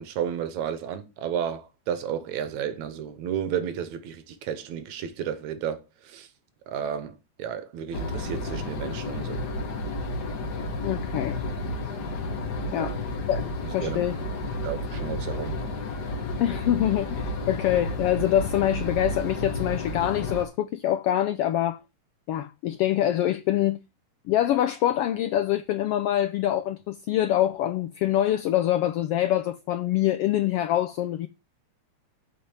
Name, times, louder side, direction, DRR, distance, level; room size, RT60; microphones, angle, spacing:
voice 1, 0.0-6.3 6.7-9.4 12.8-12.9 13.8-14.0 14.6-15.5, right 9 dB, 80° right, 2.3 m, -32 dB
sound 1, 7.9-20.5, left 2 dB, 45° left, 1.5 m, -31 dB
voice 2, 10.8-11.4 12.7-12.9 13.3-13.4 13.7-14.2 16.4-21.8 22.3-23.8 24.3-31.3, left 12 dB, 90° left, 1.3 m, -25 dB
7.5 x 5.4 x 7.1 m
omnidirectional pair, 3.3 m